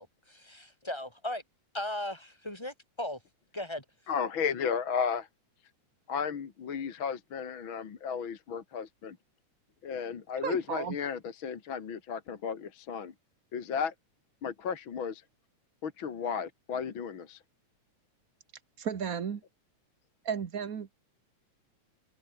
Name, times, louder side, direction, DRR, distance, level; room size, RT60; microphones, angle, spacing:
voice 1, 0.0-1.4 1.7-3.2 3.5-3.8, left 1 dB, 10° left, 5.4 m, -37 dB
voice 2, 4.1-5.3 6.1-9.2 9.8-13.1 13.5-13.9 14.4-15.2 15.8-17.4, left 6 dB, 45° left, 2.4 m, -34 dB
voice 3, 10.4-11.0 18.8-19.4 20.2-20.9, right 7 dB, 50° right, 1.0 m, -34 dB
omnidirectional pair, 3.4 m